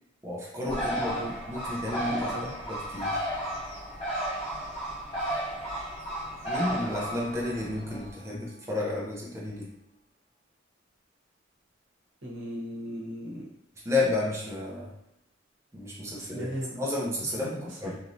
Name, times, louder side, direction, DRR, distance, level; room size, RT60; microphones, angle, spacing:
voice 1, 0.2-1.2 1.5-2.3 2.7-3.2 6.4-9.7 13.8-14.9 15.7-16.5 16.7-17.5 17.8-18.0, left 2 dB, 15° right, -5 dB, 0.6 m, -31 dB
Bird, 0.7-8.1, equal, 30° left, 0.9 m, -33 dB
voice 2, 0.8-1.3 1.8-2.5 12.2-13.5 16.1-16.9 17.4-18.0, equal, 80° right, -4 dB, 0.9 m, -37 dB
sound 1, 0.9-9.5, left 1 dB, 85° left, 0.6 m, -50 dB
3.0 x 2.5 x 2.6 m, 0.84 s
head